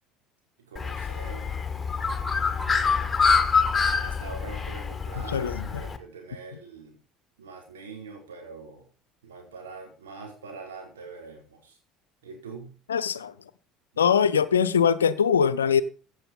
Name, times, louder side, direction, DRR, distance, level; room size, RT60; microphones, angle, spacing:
voice 1, 0.7-1.6 4.0-7.0 7.4-8.8 9.2-11.8 12.2-12.8, right 4 dB, 75° right, 4.7 m, -43 dB
Bird, 0.8-6.0, left 5 dB, 20° left, 1.9 m, -26 dB
voice 2, 5.3-5.9 12.9-13.3 14.0-15.8, left 7 dB, 80° left, 0.7 m, -22 dB
16.0 x 7.3 x 5.5 m
figure-of-eight pair, 60°, 0 cm